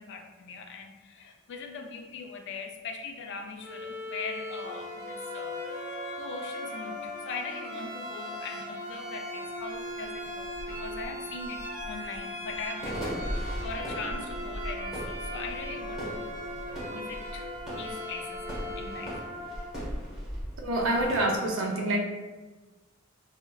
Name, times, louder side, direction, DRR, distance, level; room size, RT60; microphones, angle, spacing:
voice 1, 0.0-5.6 6.2-16.4 16.9-19.2, left 4 dB, 60° left, 4 dB, 0.4 m, -41 dB
Bowed string instrument, 3.6-19.4, equal, 60° right, 1.2 m, -42 dB
sound 1, 4.6-19.7, left 1 dB, 15° right, 0.4 m, -40 dB
sound 2, 9.4-9.5 9.9-21.4, equal, ahead, 1.0 m, -39 dB
voice 2, 20.6-22.0, right 1 dB, 75° right, 0 dB, 0.6 m, -27 dB
4.5 x 2.1 x 2.2 m, 1.3 s
head